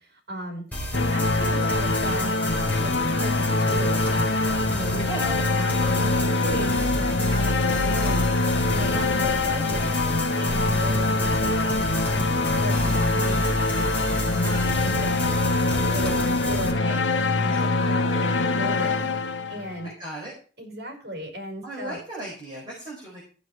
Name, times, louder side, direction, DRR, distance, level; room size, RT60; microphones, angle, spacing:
voice 1, 0.0-6.7 7.0-10.0 10.4-17.1 17.4-19.1 19.5-19.9 20.6-22.0, right 1 dB, 60° right, 3 dB, 5.1 m, -35 dB
sound 1, 0.7-16.7, left 1 dB, 10° left, 4.3 m, -31 dB
sound 2, 0.9-19.8, left 2 dB, 85° left, 1.1 m, -24 dB
voice 2, 17.5-18.9 19.8-20.3 21.6-23.2, right 2 dB, 25° right, -5 dB, 4.9 m, -38 dB
15.0 x 6.9 x 4.6 m, 0.39 s
head